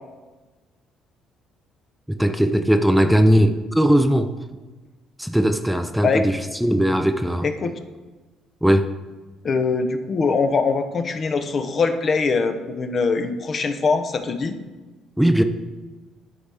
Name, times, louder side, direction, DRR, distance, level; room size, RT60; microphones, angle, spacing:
voice 1, 2.1-4.3 5.2-7.5 8.6-8.9 15.2-15.4, equal, ahead, 8 dB, 0.5 m, -19 dB
voice 2, 7.4-7.8 9.4-14.6, left 4 dB, 45° left, 8 dB, 0.7 m, -22 dB
11.5 x 4.2 x 3.4 m, 1.2 s
cardioid pair, 85°, 0 cm